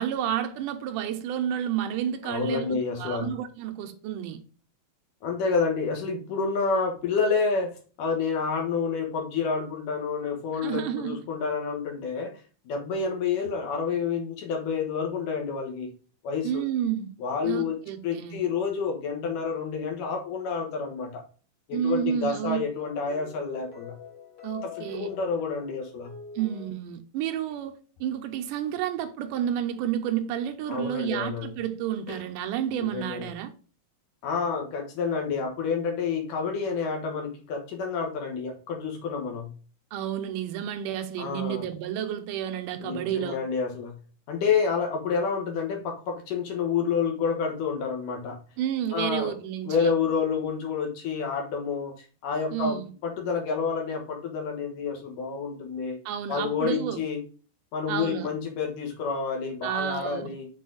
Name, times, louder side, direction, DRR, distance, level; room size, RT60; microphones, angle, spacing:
voice 1, 0.0-4.4 10.6-11.2 16.4-17.2 17.4-18.4 21.7-22.6 24.4-25.1 26.4-33.5 39.9-43.4 48.6-49.9 52.5-52.9 56.1-57.0 57.9-58.3 59.6-60.3, right 10 dB, 80° right, 2.2 m, -30 dB
voice 2, 2.2-3.3 5.2-12.3 12.7-15.9 16.2-16.6 17.2-17.8 18.0-21.2 21.7-24.0 24.6-26.2 30.7-31.6 32.1-32.2 32.8-33.3 34.2-39.5 41.2-41.6 42.8-44.0 44.3-48.4 48.9-49.4 49.7-52.8 53.0-56.0 56.3-57.2 57.7-60.5, left 5 dB, 70° left, 2.8 m, -29 dB
sound 1, 21.7-26.7, left 5 dB, 45° left, 2.3 m, -45 dB
6.2 x 4.2 x 3.8 m
omnidirectional pair, 4.0 m